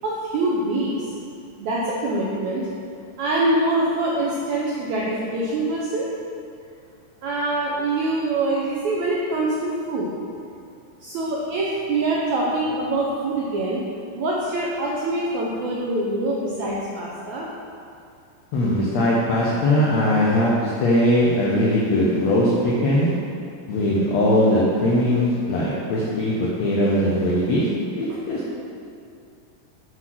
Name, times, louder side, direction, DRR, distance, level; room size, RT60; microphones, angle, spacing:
voice 1, 0.0-1.1 1.6-2.7 3.2-6.1 7.2-10.1 11.0-13.8 14.1-17.5, right 2 dB, 90° right, -4 dB, 1.6 m, -24 dB
voice 2, 18.5-23.1 23.7-27.6 28.0-28.6, left 1 dB, 85° left, -6 dB, 1.5 m, -20 dB
7.9 x 4.0 x 6.0 m, 2.4 s
omnidirectional pair, 4.3 m